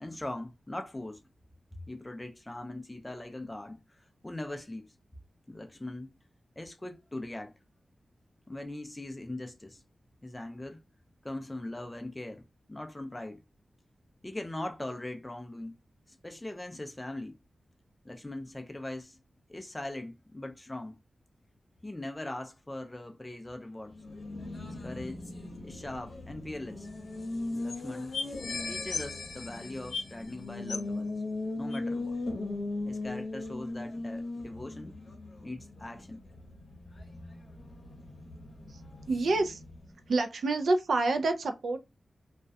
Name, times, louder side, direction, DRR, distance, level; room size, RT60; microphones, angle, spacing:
voice 1, 0.0-1.2 1.7-3.8 4.2-4.9 5.5-6.1 6.6-7.5 8.5-9.8 10.2-10.8 11.2-13.4 14.2-15.8 16.2-17.4 18.0-19.2 19.5-21.0 21.8-23.9 24.7-25.2 25.6-26.9 27.5-28.1 28.7-31.1 31.6-32.2 32.8-34.9 35.4-36.2, left 1 dB, 15° left, 0.3 m, -40 dB
Race car auto racing, 23.8-40.1, left 2 dB, 60° left, 0.8 m, -39 dB
sound 1, 26.8-26.9 27.1-27.2 27.7-27.8 28.1-30.3 30.7-31.0 31.7-31.8, left 4 dB, 90° left, 0.5 m, -37 dB
voice 2, 39.1-39.6 40.1-41.8, right 3 dB, 75° right, 0.3 m, -27 dB
2.3 x 2.1 x 2.6 m
wide cardioid pair, 155°, 0 cm